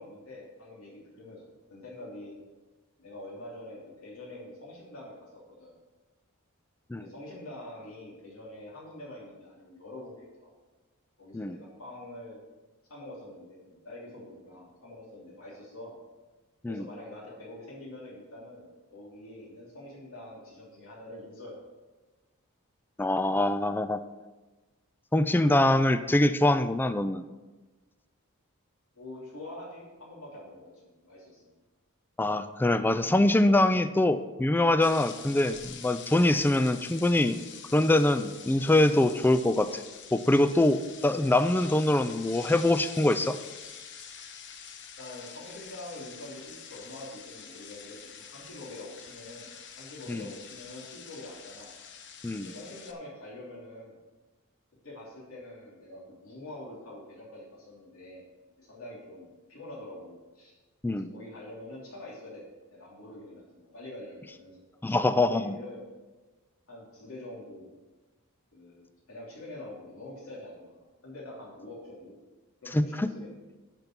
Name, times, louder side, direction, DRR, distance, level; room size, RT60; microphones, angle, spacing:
voice 1, 0.0-1.4 1.7-2.4 3.0-5.3 5.6-5.7 6.9-10.5 11.2-12.4 12.9-16.0 16.7-21.5 28.9-31.4 45.0-51.7 52.4-54.0 54.8-58.2 58.6-60.5 60.9-62.4 62.7-65.8 66.7-67.7 68.5-70.8 71.0-72.1 72.6-73.4, left 1 dB, 70° left, -7 dB, 3.0 m, -45 dB
voice 2, 23.0-24.0 25.1-27.2 32.2-37.4 37.7-39.8 40.1-43.4 50.1-50.2 52.2-52.5 60.8-61.1 64.8-65.6 72.7-73.1, left 1 dB, 10° left, 11 dB, 0.3 m, -24 dB
sound 1, 34.8-52.9, left 7 dB, 55° left, 0.9 m, -46 dB
11.5 x 5.3 x 6.0 m, 1.2 s
head